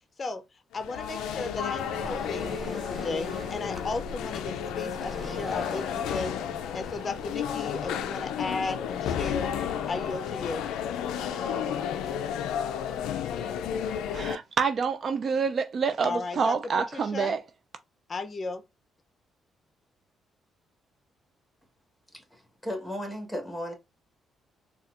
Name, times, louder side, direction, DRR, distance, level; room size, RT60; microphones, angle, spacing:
sound 1, 0.7-14.4, left 8 dB, 90° left, 0.3 m, -32 dB
voice 1, 0.7-6.3 6.7-9.5 9.9-10.7 16.0-17.4 18.1-18.6, left 3 dB, 35° left, 0.5 m, -35 dB
Waves surf, 1.4-7.6, right 1 dB, 20° right, 0.7 m, -45 dB
voice 2, 14.1-17.4, right 5 dB, 50° right, 0.3 m, -27 dB
voice 3, 22.1-23.7, equal, ahead, 1.2 m, -35 dB
4.2 x 2.2 x 2.4 m
cardioid pair, 90°, 0 cm